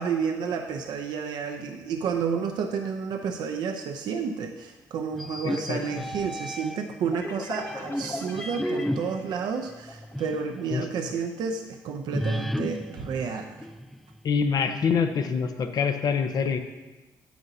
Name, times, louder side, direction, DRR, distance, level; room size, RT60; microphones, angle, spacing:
voice 1, 0.0-13.7, right 6 dB, 70° right, 4 dB, 0.6 m, -31 dB
sound 1, 5.1-7.0 7.6-10.5 10.9-11.0 12.1-14.2, equal, 5° left, 0.3 m, -33 dB
voice 2, 5.4-6.0 10.7-10.8 14.2-16.6, left 6 dB, 60° left, 7 dB, 0.8 m, -26 dB
sound 2, 7.1-10.6, left 2 dB, 30° left, 0.8 m, -40 dB
9.2 x 7.7 x 2.7 m, 1.1 s
supercardioid pair, 65°, 8 cm